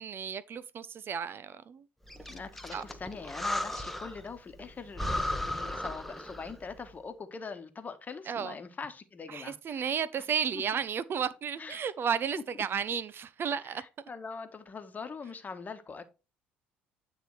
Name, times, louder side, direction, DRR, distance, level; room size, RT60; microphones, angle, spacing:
voice 1, 0.0-1.8 2.7-2.8 8.3-8.5 9.3-13.8, right 7 dB, 40° right, 0.5 m, -33 dB
Breathing, 2.1-4.3 4.6-4.7 4.9-6.6, left 1 dB, 5° left, 1.0 m, -35 dB
voice 2, 2.3-9.9 10.5-10.6 11.6-11.8 13.6-16.0, left 4 dB, 30° left, 1.2 m, -42 dB
9.3 x 3.6 x 4.6 m
hypercardioid pair, 60°, 6 cm